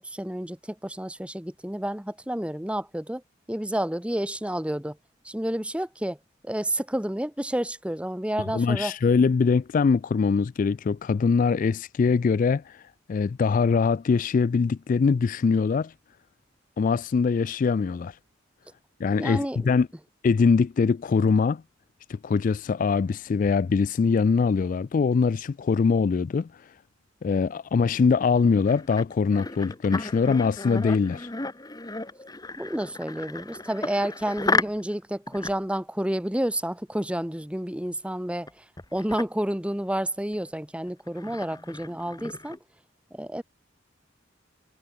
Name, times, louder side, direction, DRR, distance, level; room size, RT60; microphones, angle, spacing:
voice 1, 0.0-3.2 3.5-5.0 5.2-6.2 6.4-8.9 19.2-19.7 32.6-42.6 43.1-43.4, right 1 dB, 5° right, 1.1 m, -30 dB
voice 2, 8.5-12.8 13.1-15.9 16.8-18.2 19.0-19.9 20.2-21.6 22.1-26.5 27.2-31.3, left 5 dB, 45° left, 0.3 m, -23 dB
sound 1, 28.3-34.9 35.3-35.8 38.5-38.6 38.8-39.2 40.3-40.4 40.9-42.6, left 3 dB, 20° left, 1.4 m, -33 dB
head